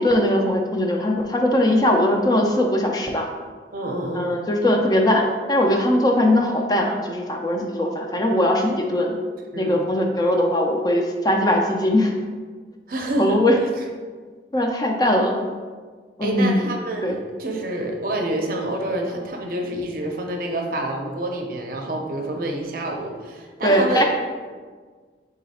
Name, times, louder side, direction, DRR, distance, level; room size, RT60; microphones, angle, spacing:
voice 1, 0.0-3.3 4.1-9.1 9.6-12.1 13.2-13.6 14.5-15.5 16.2-16.6 17.0-17.1 23.6-24.0, left 1 dB, 20° left, 2 dB, 0.3 m, -20 dB
voice 2, 3.7-4.3 9.5-9.8 12.9-13.6 16.2-24.0, right 1 dB, 50° right, 2 dB, 0.6 m, -27 dB
3.8 x 3.2 x 4.1 m, 1.5 s
head